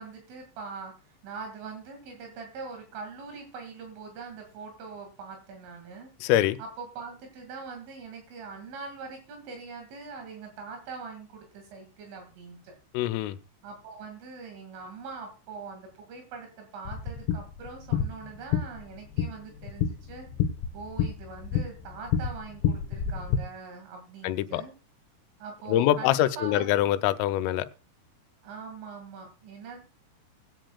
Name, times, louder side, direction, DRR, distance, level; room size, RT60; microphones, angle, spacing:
voice 1, 0.0-6.1 6.6-12.8 13.6-20.3 20.7-24.7 25.4-26.9 28.4-29.8, right 4 dB, 75° right, 4 dB, 4.5 m, -42 dB
voice 2, 6.2-6.6 12.9-13.4 24.2-24.6 25.7-27.7, left 13 dB, 85° left, 11 dB, 3.3 m, -24 dB
sound 1, 16.9-23.4, left 8 dB, 70° left, 3.0 m, -29 dB
20.5 x 9.0 x 2.3 m, 0.33 s
omnidirectional pair, 5.7 m